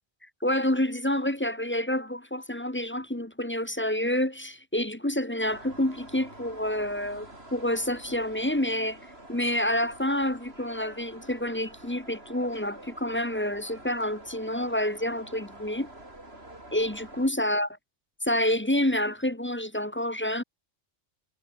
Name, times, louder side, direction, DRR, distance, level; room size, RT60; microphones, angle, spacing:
voice 1, 0.4-9.0 9.3-15.9 16.7-17.8 18.3-20.4, left 1 dB, 10° left, 1.0 m, -28 dB
sound 1, 5.4-17.3, right 1 dB, 50° right, 6.9 m, -47 dB
omnidirectional pair, 1.3 m